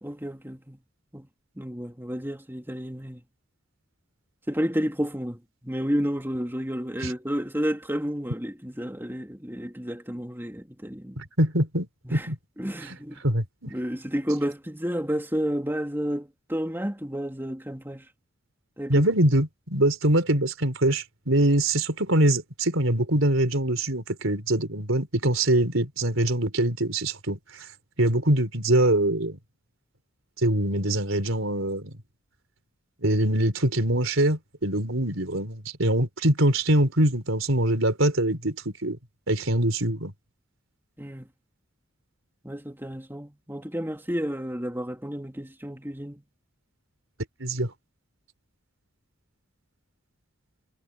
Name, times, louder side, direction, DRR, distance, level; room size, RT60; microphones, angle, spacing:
voice 1, 0.0-0.8 1.1-1.3 1.6-3.2 4.5-11.2 12.0-12.3 12.6-13.2 13.6-18.0 18.8-19.1 41.0-41.3 42.4-46.2, equal, 10° right, 3.2 m, -31 dB
voice 2, 11.2-12.4 13.2-13.7 18.9-27.4 28.0-29.4 30.4-31.9 33.0-39.0 39.3-40.1 47.4-47.7, right 1 dB, 70° right, 4.3 m, -23 dB
head